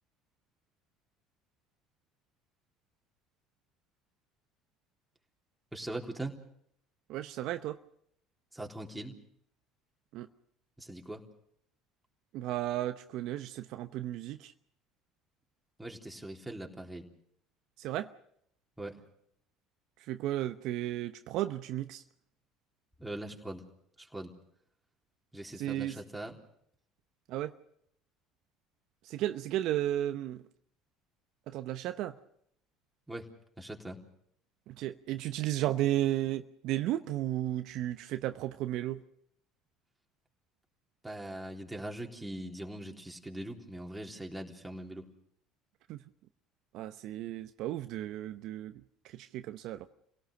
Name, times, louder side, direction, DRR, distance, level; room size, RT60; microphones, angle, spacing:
voice 1, 5.7-6.4 8.5-9.1 10.8-11.2 15.8-17.1 18.8-19.0 23.0-23.6 24.0-24.3 25.3-26.4 33.1-33.3 33.6-34.0 41.0-45.0, right 1 dB, 5° right, 3.8 m, -41 dB
voice 2, 7.1-7.8 10.1-10.3 12.3-14.5 17.8-18.1 20.0-22.0 25.5-26.0 27.3-27.6 29.0-30.4 31.5-32.2 34.7-39.0 45.9-46.0 46.7-49.9, right 13 dB, 65° right, 0.8 m, -34 dB
28.0 x 17.5 x 6.6 m
hypercardioid pair, 70°, 0 cm